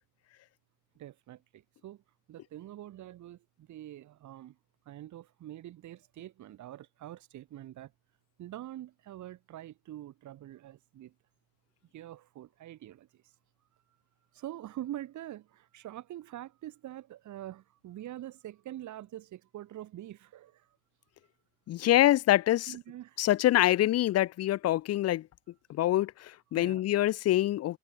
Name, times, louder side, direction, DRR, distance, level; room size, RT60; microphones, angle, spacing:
voice 1, 1.0-2.0 2.3-4.6 4.9-7.9 8.4-11.1 11.9-13.2 14.3-20.8 22.7-23.2 26.5-26.8, right 13 dB, 55° right, 2.6 m, -45 dB
voice 2, 21.7-22.8 23.2-25.3 25.7-27.8, left 14 dB, 45° left, 0.6 m, -25 dB
cardioid pair, 120°, 34 cm